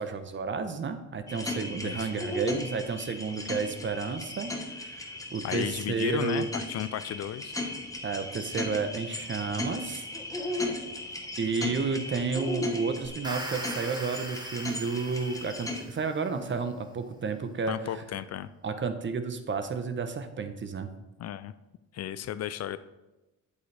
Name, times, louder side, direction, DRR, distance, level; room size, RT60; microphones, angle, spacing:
voice 1, 0.0-6.5 8.0-10.1 11.4-18.0 18.6-20.9, right 4 dB, 40° right, 9 dB, 0.9 m, -31 dB
sound 1, 1.3-15.8, left 2 dB, 10° left, 1.3 m, -36 dB
voice 2, 5.4-7.5 17.7-18.5 21.2-21.5 21.9-22.8, left 11 dB, 55° left, 14 dB, 0.5 m, -34 dB
sound 2, 13.0-16.2, right 1 dB, 15° right, 1.5 m, -41 dB
8.6 x 7.9 x 3.4 m, 1.0 s
cardioid pair, 90°, 30 cm